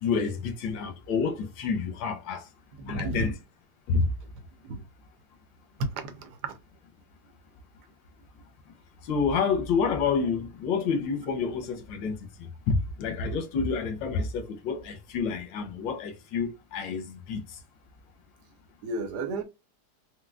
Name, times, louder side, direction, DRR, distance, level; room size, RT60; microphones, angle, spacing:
voice 1, 0.0-2.5 2.9-3.3 3.9-4.1 9.0-12.2 12.7-17.4, left 5 dB, 90° left, 1.5 m, -28 dB
voice 2, 2.8-3.3 4.6-4.8 5.8-6.6 18.8-19.4, right 2 dB, 70° right, 1.2 m, -32 dB
4.5 x 2.1 x 2.3 m
omnidirectional pair, 2.0 m